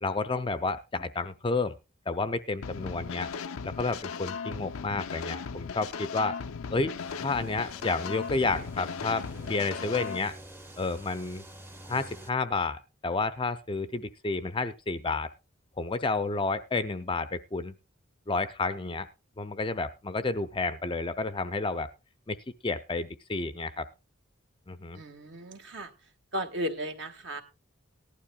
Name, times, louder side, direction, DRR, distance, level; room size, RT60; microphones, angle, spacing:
voice 1, 0.0-1.8 2.1-3.3 3.6-6.4 6.7-6.9 7.2-10.3 10.8-11.5 11.9-15.3 15.8-17.8 18.3-19.1 19.4-21.9 22.3-22.4 22.6-23.9 24.7-25.0, left 3 dB, 25° left, 12 dB, 0.5 m, -30 dB
sound 1, 2.6-10.2, left 6 dB, 90° left, 0.5 m, -37 dB
sound 2, 7.0-12.3, right 1 dB, 10° right, 0.7 m, -47 dB
voice 2, 24.9-25.9 26.3-27.4, equal, 60° right, 6 dB, 1.4 m, -35 dB
18.5 x 11.5 x 2.3 m, 0.26 s
head